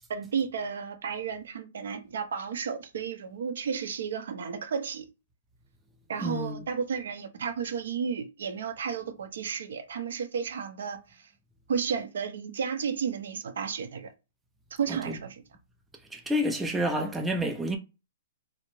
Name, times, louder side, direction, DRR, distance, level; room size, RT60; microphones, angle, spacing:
voice 1, 0.1-5.1 6.1-11.3 11.7-14.1 14.8-15.4, right 6 dB, 75° right, 0.6 m, -33 dB
voice 2, 6.2-6.6 14.9-15.1 16.1-17.8, equal, 5° right, 0.4 m, -29 dB
2.5 x 2.0 x 3.0 m
hypercardioid pair, 140°, 0 cm